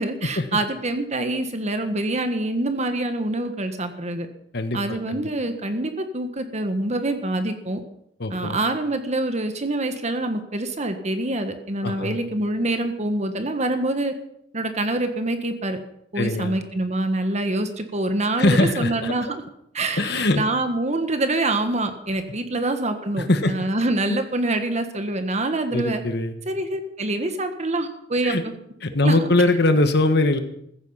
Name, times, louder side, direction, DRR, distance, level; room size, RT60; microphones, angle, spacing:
voice 1, 0.0-4.3 4.7-7.8 8.3-14.1 14.5-15.8 16.1-19.4 19.7-26.0 26.5-28.5 29.0-29.3, right 2 dB, 40° right, 7 dB, 1.4 m, -25 dB
voice 2, 4.5-5.2 8.2-8.6 11.8-12.2 16.1-16.6 18.4-19.1 20.0-20.4 23.2-23.5 25.7-26.3 28.2-28.4 28.8-30.4, left 2 dB, 65° left, 8 dB, 1.4 m, -21 dB
15.5 x 14.5 x 5.7 m, 0.74 s
head